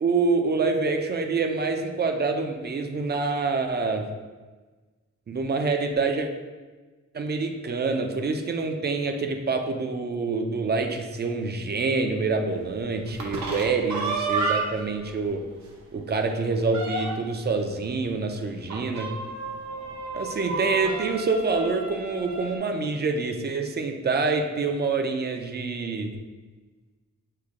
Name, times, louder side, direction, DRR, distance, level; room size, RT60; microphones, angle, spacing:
voice 1, 0.0-4.1 5.3-6.3 7.1-15.4 15.9-19.1 20.1-26.1, right 4 dB, 35° right, 5 dB, 0.4 m, -26 dB
sound 1, 13.1-14.9 15.3-15.4 15.7-15.8 16.2-17.4 18.7-22.6, right 3 dB, 70° right, 0.7 m, -31 dB
6.5 x 2.2 x 3.6 m, 1.3 s
wide cardioid pair, 145°, 29 cm